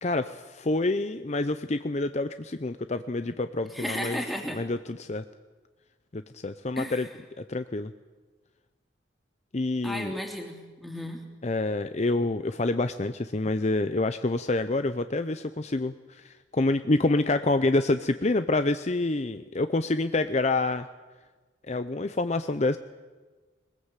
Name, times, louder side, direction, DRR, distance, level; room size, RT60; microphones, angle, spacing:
voice 1, 0.0-4.2 4.5-5.2 6.1-7.1 7.4-7.9 9.5-10.1 11.4-20.9 21.7-22.8, left 2 dB, 35° left, 10 dB, 0.6 m, -27 dB
voice 2, 3.7-4.6 6.8-7.1 9.8-11.2, equal, ahead, 1 dB, 2.9 m, -34 dB
22.0 x 20.0 x 8.3 m, 1.3 s
head